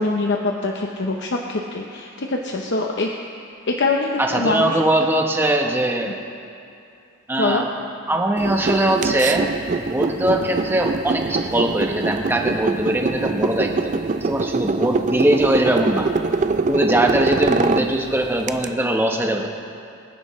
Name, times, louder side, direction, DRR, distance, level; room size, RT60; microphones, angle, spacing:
voice 1, 0.0-3.1 3.7-4.8 7.4-7.6, left 3 dB, 55° left, 1 dB, 0.8 m, -23 dB
voice 2, 4.2-6.2 7.3-7.6 8.1-9.5 9.8-13.9 14.2-16.1 16.7-19.5, right 1 dB, 10° right, 1 dB, 1.0 m, -21 dB
sound 1, 8.4-18.7, right 3 dB, 35° right, 0.4 m, -23 dB
25.0 x 10.5 x 3.2 m, 2.6 s
head